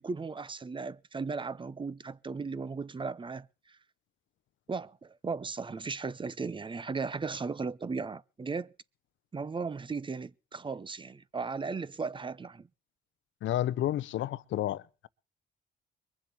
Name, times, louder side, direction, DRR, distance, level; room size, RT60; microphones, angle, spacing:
voice 1, 0.0-3.8 4.7-8.7 9.3-12.7, right 4 dB, 25° right, 0.7 m, -36 dB
voice 2, 13.4-15.1, left 13 dB, 75° left, 0.7 m, -31 dB
22.5 x 7.5 x 6.9 m
cardioid pair, 90°, 20 cm